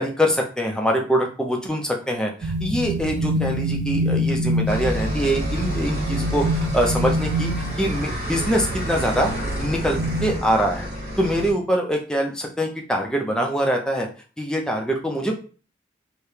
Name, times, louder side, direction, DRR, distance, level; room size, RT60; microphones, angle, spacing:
voice 1, 0.0-7.5 7.8-10.9 11.2-14.1 14.4-15.3, equal, 5° left, 1 dB, 0.5 m, -24 dB
sound 1, 2.4-10.4, equal, 80° right, 0.4 m, -26 dB
sound 2, 4.7-11.5, equal, 55° right, 1.9 m, -29 dB
4.7 x 2.2 x 3.2 m, 0.39 s
head